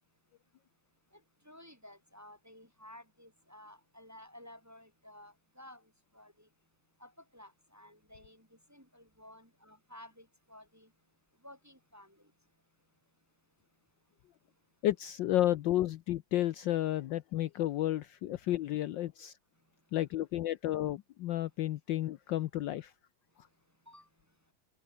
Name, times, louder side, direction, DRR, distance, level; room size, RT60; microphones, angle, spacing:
voice 1, 1.5-5.8 6.1-6.5 7.0-10.9 11.4-12.2 23.9-24.1, left 1 dB, 10° right, 1.8 m, -54 dB
voice 2, 14.8-19.3 19.9-22.9, left 13 dB, 70° left, 1.3 m, -32 dB
omnidirectional pair, 2.3 m